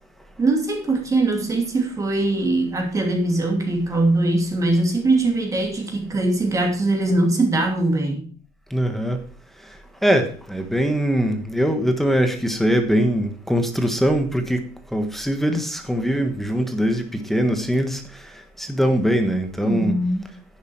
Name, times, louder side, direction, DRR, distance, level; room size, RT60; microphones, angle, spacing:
voice 1, 0.4-8.3 19.6-20.2, right 2 dB, 20° right, 2.7 m, -21 dB
voice 2, 8.7-9.2 10.0-14.6 14.9-18.0 18.6-20.0, equal, ahead, 1.4 m, -22 dB
10.5 x 9.8 x 4.5 m
cardioid pair, 160°, 16 cm